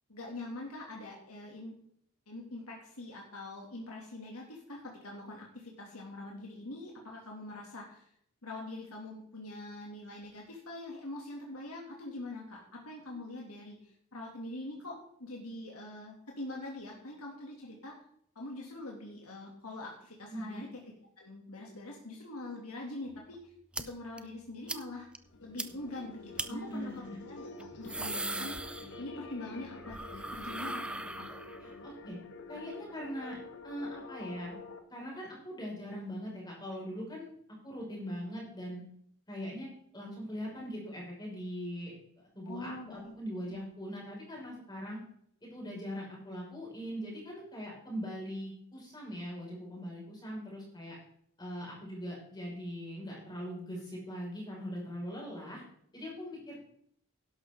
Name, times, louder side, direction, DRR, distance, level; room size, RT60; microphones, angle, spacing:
voice 1, 0.1-1.7 2.3-8.0 8.4-17.9 18.3-20.8 21.2-23.5 23.8-25.1 25.4-27.4 27.8-28.5 29.0-31.3 42.4-43.6, left 2 dB, 80° left, -1 dB, 2.6 m, -44 dB
voice 2, 20.3-20.7 26.5-27.2 31.6-32.2 32.5-33.4 33.6-34.6 34.9-37.3 37.6-38.8 39.3-39.7 39.9-41.9 42.4-45.0 45.5-51.0 51.4-55.6 55.9-56.6, equal, 20° left, -4 dB, 5.4 m, -41 dB
sound 1, 23.7-23.8 24.2-24.3 24.7-24.8 25.1-25.2 25.6-25.7 26.4-26.5 27.6-29.3 29.6-31.7, right 2 dB, 5° right, 0.4 m, -38 dB
sound 2, 25.2-34.8, left 3 dB, 55° left, 1.6 m, -48 dB
11.5 x 11.5 x 3.8 m, 0.66 s
head